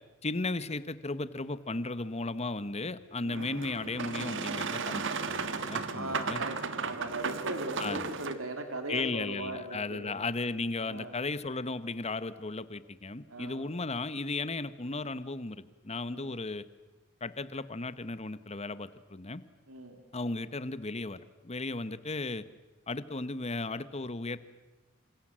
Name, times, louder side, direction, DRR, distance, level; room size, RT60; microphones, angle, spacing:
voice 1, 0.2-6.4 7.8-8.1 8.9-16.6 17.2-19.4 20.1-22.5 22.9-24.4, left 3 dB, 30° left, 14 dB, 1.1 m, -35 dB
voice 2, 3.2-3.6 5.9-10.2 10.8-11.1 13.3-13.7 16.1-16.3 19.7-20.0, right 2 dB, 80° right, 5 dB, 3.4 m, -39 dB
Boat Water vehicle, 3.3-8.3, right 5 dB, 65° right, 1.7 m, -35 dB
28.0 x 26.5 x 7.6 m, 1.1 s
head